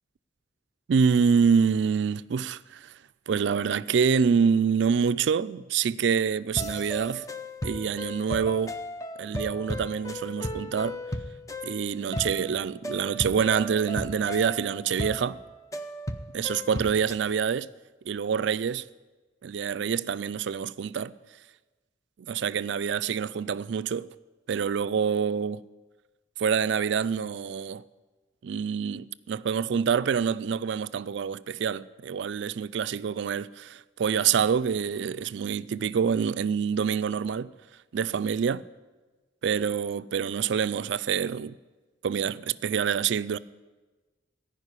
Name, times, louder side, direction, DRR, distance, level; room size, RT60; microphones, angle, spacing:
voice 1, 0.9-2.9 3.3-7.2 7.6-8.7 9.2-11.0 11.6-15.4 16.3-17.7 18.1-18.8 19.4-21.1 22.3-24.1 24.5-25.6 26.4-27.8 28.4-37.5 37.9-38.6 39.4-41.5 42.0-43.4, right 6 dB, 65° right, 0.4 m, -26 dB
sound 1, 6.6-17.3, left 1 dB, 15° left, 0.6 m, -36 dB
15.5 x 5.2 x 9.7 m
head